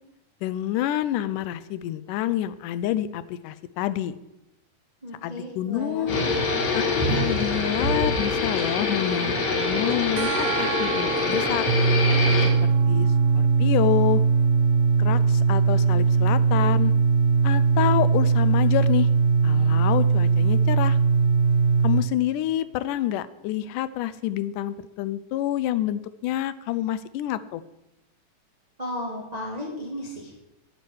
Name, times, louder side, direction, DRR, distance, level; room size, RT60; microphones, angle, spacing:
voice 1, 0.4-4.1 5.2-6.2 6.7-6.8 7.1-11.7 12.6-14.2 15.0-16.9 17.4-19.1 19.4-21.0 21.8-27.6, left 13 dB, 90° left, 14 dB, 2.2 m, -28 dB
voice 2, 5.0-6.3 6.7-7.0 28.8-30.4, left 1 dB, 15° right, -2 dB, 1.5 m, -34 dB
sound 1, 6.1-12.5, left 3 dB, 60° left, 2.9 m, -25 dB
sound 2, 10.2-21.1, right 8 dB, 90° right, 2.4 m, -38 dB
sound 3, 11.7-22.0, right 5 dB, 70° right, 1.8 m, -20 dB
9.9 x 9.5 x 6.3 m, 0.93 s
omnidirectional pair, 3.6 m